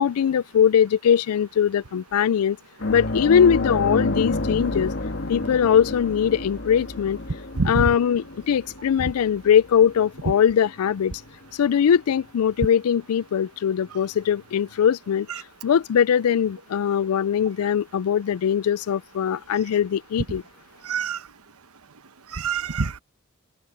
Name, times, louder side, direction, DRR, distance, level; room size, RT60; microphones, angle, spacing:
voice 1, 0.0-2.6 2.9-4.9 5.3-7.2 7.7-11.1 11.6-15.3 15.6-20.4, left 8 dB, 85° left, 0.4 m, -21 dB
sound 1, 2.8-11.8 12.1-12.3 14.3-14.4, left 2 dB, 60° left, 1.7 m, -30 dB
voice 2, 7.6-7.9 9.0-9.1 20.8-21.2 22.3-23.0, right 4 dB, 90° right, 1.1 m, -25 dB
open air
head